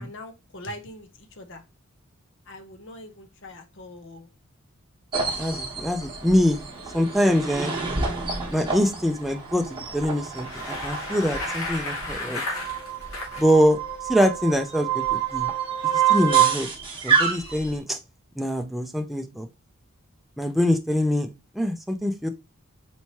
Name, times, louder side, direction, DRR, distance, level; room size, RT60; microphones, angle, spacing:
voice 1, 0.0-1.6 2.5-4.3, left 1 dB, 55° left, 0.7 m, -42 dB
sound 1, 5.1-17.8, right 7 dB, 25° right, 1.0 m, -27 dB
voice 2, 5.4-6.7 6.9-7.8 8.5-12.4 13.4-13.8 14.1-15.5 16.1-16.7 17.0-18.0 18.4-19.5 20.4-22.3, equal, ahead, 0.3 m, -24 dB
Bicycle, 10.2-13.5, left 2 dB, 90° left, 1.8 m, -33 dB
4.4 x 3.0 x 2.8 m
head